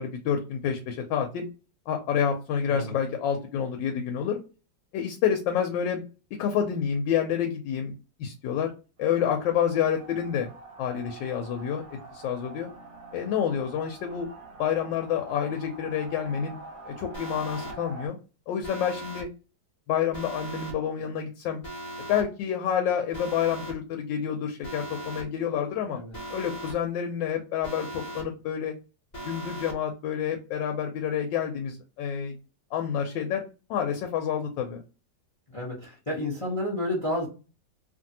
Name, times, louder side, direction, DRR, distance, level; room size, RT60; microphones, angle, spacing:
voice 1, 0.0-1.5 1.9-4.4 4.9-6.0 6.4-7.9 8.2-8.7 9.0-10.5 10.8-11.8 12.1-12.7 13.1-14.3 14.6-16.6 16.9-18.2 18.5-19.3 19.9-21.6 22.1-26.0 26.3-28.8 29.2-32.3 32.7-33.4 33.7-34.8, left 8 dB, 80° left, 4 dB, 1.3 m, -28 dB
sound 1, 9.0-18.1, right 3 dB, 55° right, 0.8 m, -46 dB
Alarm, 17.1-17.7 18.6-19.2 20.1-20.7 21.6-22.2 23.1-23.7 24.6-25.2 26.1-26.7 27.6-28.2 29.1-29.7, right 1 dB, 35° left, 0.8 m, -38 dB
voice 2, 35.5-37.3, left 1 dB, 60° left, -3 dB, 0.3 m, -30 dB
2.9 x 2.6 x 2.7 m, 0.32 s
omnidirectional pair, 2.0 m